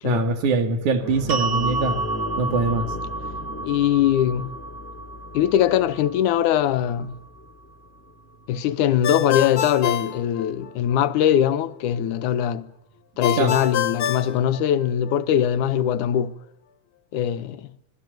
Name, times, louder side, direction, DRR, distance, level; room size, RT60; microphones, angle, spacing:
voice 1, 0.0-2.0 2.4-2.9 13.4-13.5, right 3 dB, 80° right, 3.5 m, -23 dB
sound 1, 1.0-9.9 10.3-10.4 12.5-12.6, left 1 dB, 5° left, 2.2 m, -37 dB
sound 2, 1.3-7.5, right 3 dB, 30° right, 1.9 m, -31 dB
voice 2, 3.6-4.5 5.3-7.2 8.5-12.7 13.2-16.3 17.1-17.7, left 10 dB, 90° left, 2.6 m, -21 dB
Ringtone, 9.0-11.0 13.2-15.2, left 10 dB, 55° left, 1.7 m, -27 dB
25.5 x 18.5 x 9.2 m
omnidirectional pair, 3.4 m